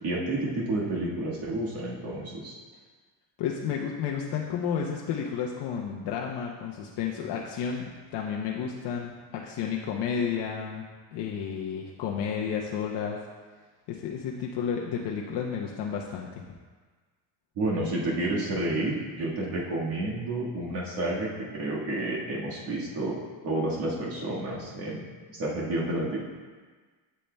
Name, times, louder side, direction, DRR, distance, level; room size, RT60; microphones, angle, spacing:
voice 1, 0.0-2.5 17.5-23.1 23.4-25.0 25.3-26.2, right 2 dB, 55° right, -5 dB, 1.7 m, -30 dB
voice 2, 3.4-13.2 13.9-16.4, left 7 dB, 55° left, -1 dB, 0.7 m, -32 dB
8.5 x 7.5 x 2.2 m, 1.5 s
cardioid pair, 125°, 47 cm